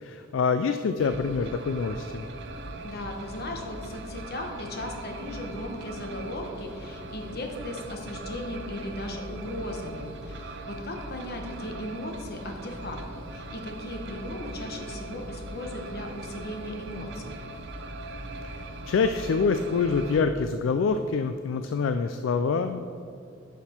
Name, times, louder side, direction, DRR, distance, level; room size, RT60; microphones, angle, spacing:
voice 1, 0.0-2.3 18.9-22.8, left 5 dB, 70° left, 9 dB, 0.3 m, -26 dB
sound 1, 1.0-20.2, right 2 dB, 60° right, 0.6 m, -40 dB
voice 2, 2.8-17.4, left 1 dB, 55° left, 3 dB, 1.1 m, -37 dB
9.7 x 6.0 x 4.4 m, 2.4 s
head